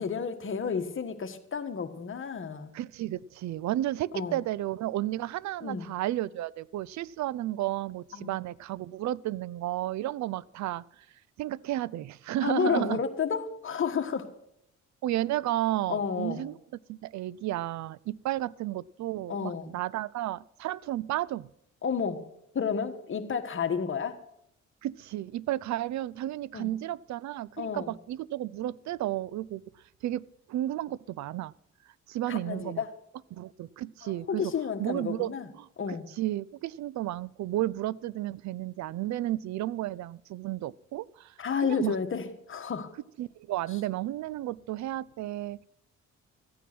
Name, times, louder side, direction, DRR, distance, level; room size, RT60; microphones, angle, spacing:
voice 1, 0.0-2.7 4.1-4.4 5.6-5.9 8.1-8.3 12.4-14.3 15.9-16.5 19.3-19.7 21.8-22.2 22.5-24.2 26.5-26.7 27.6-27.9 32.3-32.9 34.0-35.5 35.8-36.1 41.4-42.9, left 6 dB, 45° left, 7 dB, 1.5 m, -31 dB
voice 2, 2.7-10.8 11.4-13.0 15.0-16.6 16.9-21.5 24.8-29.6 30.0-31.5 32.1-32.8 33.3-34.4 34.8-35.3 35.6-41.3 41.6-41.9 43.2-45.6, right 14 dB, 65° right, 23 dB, 0.5 m, -32 dB
14.5 x 9.3 x 6.0 m, 0.77 s
cardioid pair, 90°, 30 cm